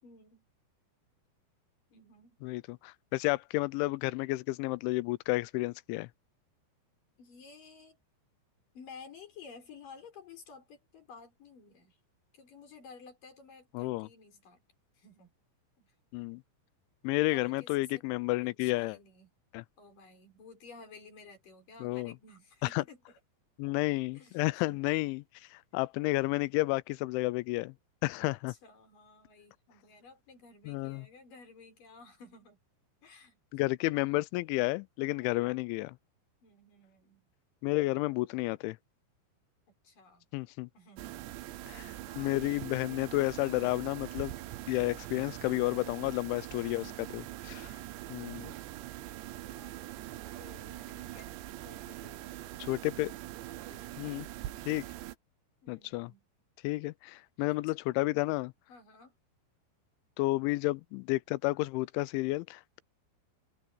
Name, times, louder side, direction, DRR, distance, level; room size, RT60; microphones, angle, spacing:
voice 1, 0.0-0.5 1.9-2.4 7.2-8.0 8.7-12.0 12.3-14.6 15.0-15.3 15.8-15.9 17.3-18.1 18.4-19.3 19.8-23.2 24.1-24.8 28.3-32.6 33.0-33.8 35.1-35.6 36.4-37.2 39.7-40.3 40.7-41.4 42.1-42.6 44.6-45.0 47.5-48.3 49.5-49.9 50.4-51.3 51.6-52.3 53.6-54.2 55.6-56.2 57.4-57.8 58.7-59.2, left 4 dB, 45° left, 7.1 m, -54 dB
voice 2, 2.4-6.1 13.7-14.1 16.1-16.4 17.0-19.0 19.5-19.6 21.8-22.1 22.6-22.8 23.6-25.2 25.5-27.7 28.0-28.5 30.7-31.1 33.5-35.9 37.6-38.8 40.3-40.7 41.7-44.3 44.7-47.5 48.1-48.5 52.6-53.1 54.0-54.3 54.7-54.8 55.7-56.1 56.6-58.5 60.2-62.8, left 21 dB, 85° left, 3.0 m, -31 dB
sound 1, 41.0-55.2, right 15 dB, 80° right, 3.0 m, -43 dB
omnidirectional pair, 5.3 m